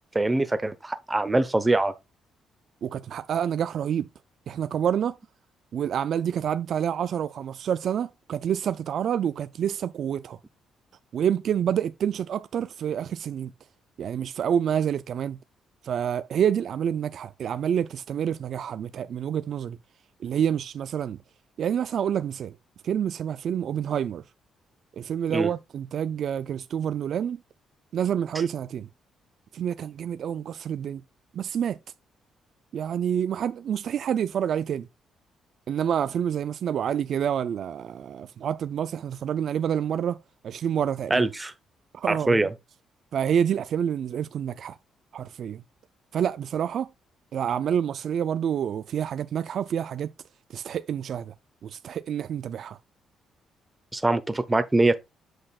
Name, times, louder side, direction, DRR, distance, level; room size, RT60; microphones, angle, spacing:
voice 1, 0.1-1.9 25.3-25.5 41.1-41.5 42.1-42.5 53.9-54.9, right 2 dB, 15° right, 0.9 m, -23 dB
voice 2, 2.8-4.1 4.5-5.2 5.7-10.4 11.1-13.5 14.0-15.4 15.8-19.8 20.2-21.2 21.6-22.5 22.8-24.2 24.9-27.4 27.9-28.9 29.5-31.0 31.3-31.8 32.7-34.9 35.7-40.2 40.4-41.3 41.9-42.5 43.1-44.8 45.1-45.6 46.1-46.9 47.3-50.1 50.5-51.3 51.6-52.8, right 9 dB, 65° right, 0.4 m, -28 dB
7.8 x 6.4 x 2.4 m
cardioid pair, 90°, 0 cm